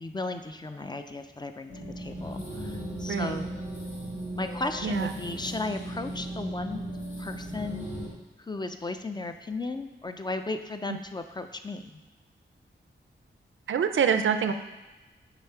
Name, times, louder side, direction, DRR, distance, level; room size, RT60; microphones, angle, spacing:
voice 1, 0.0-3.5 4.4-6.8 7.2-7.9 8.4-12.0, left 2 dB, 20° left, 7 dB, 0.3 m, -35 dB
sound 1, 1.7-8.1, right 1 dB, 85° left, 2.0 m, -37 dB
voice 2, 3.1-3.4 4.8-5.1 13.7-14.5, right 7 dB, 80° right, 9 dB, 0.5 m, -25 dB
6.8 x 4.6 x 4.5 m, 1.1 s
wide cardioid pair, 145°, 20 cm